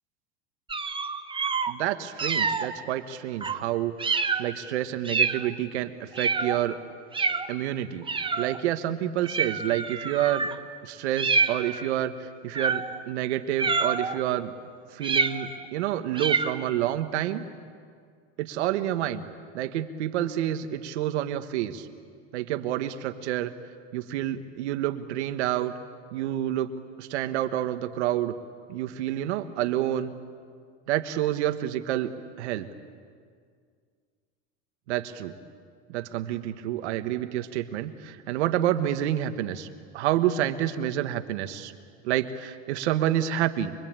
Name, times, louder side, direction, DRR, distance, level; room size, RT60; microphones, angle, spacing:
sound 1, 0.7-1.7 2.2-2.7 3.4-3.6 4.0-4.5 5.0-5.5 6.1-6.6 7.1-7.5 8.1-8.6 9.2-10.6 11.2-11.9 12.5-13.0 13.6-14.2 15.0-15.6 16.1-16.6, right 5 dB, 15° right, 1.1 m, -27 dB
voice 1, 1.7-6.8 7.5-8.1 8.4-10.5 10.8-14.5 14.9-17.4 18.4-19.3 19.5-21.9 22.3-23.5 23.9-25.7 26.1-26.7 27.0-28.3 28.7-30.1 30.9-32.1 32.4-32.7 34.9-35.3 35.9-39.7 39.9-41.7 42.0-43.7, right 12 dB, 85° right, 9 dB, 1.6 m, -28 dB
25.0 x 24.0 x 9.0 m, 2.1 s
supercardioid pair, 120°, 33 cm